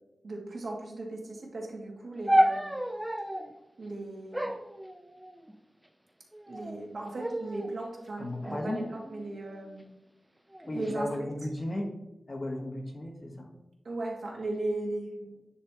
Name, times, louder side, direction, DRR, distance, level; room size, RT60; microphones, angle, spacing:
voice 1, 0.2-2.7 3.8-4.5 6.5-9.8 10.7-11.1 13.8-15.4, right 2 dB, 70° right, -2 dB, 2.4 m, -37 dB
sound 1, 2.3-3.5 4.3-5.5 6.3-6.8 7.2-7.7 8.4-9.7 10.5-10.9, equal, 10° right, 0.6 m, -31 dB
voice 2, 8.2-8.9 10.7-12.0 12.3-13.5, left 1 dB, 45° left, 2 dB, 1.6 m, -35 dB
9.8 x 3.4 x 4.4 m, 0.95 s
cardioid pair, 55°, 0 cm